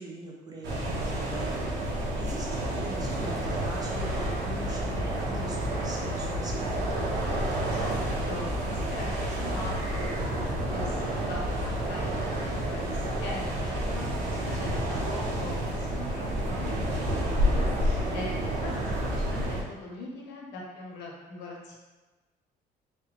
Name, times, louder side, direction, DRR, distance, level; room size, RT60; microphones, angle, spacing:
voice 1, 0.0-7.1 18.4-19.2, right 2 dB, 25° right, -3 dB, 0.7 m, -42 dB
sound 1, 0.6-19.6, right 1 dB, 75° right, 0.8 m, -30 dB
voice 2, 7.7-21.7, left 2 dB, 80° left, -3 dB, 0.9 m, -41 dB
3.4 x 2.2 x 3.4 m, 1.2 s
cardioid pair, 110°, 17 cm